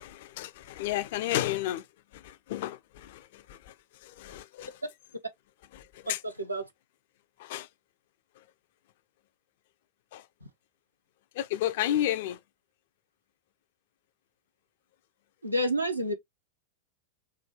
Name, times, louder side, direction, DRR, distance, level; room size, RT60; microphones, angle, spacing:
voice 1, 0.0-1.9 2.1-3.7 4.0-4.8 5.7-6.2 7.4-7.7 8.4-8.5 10.1-10.3 11.3-12.4, left 13 dB, 50° left, 0.4 m, -32 dB
voice 2, 15.4-16.1, equal, 85° right, 0.8 m, -28 dB
4.8 x 2.3 x 3.0 m
figure-of-eight pair, 90°, 0 cm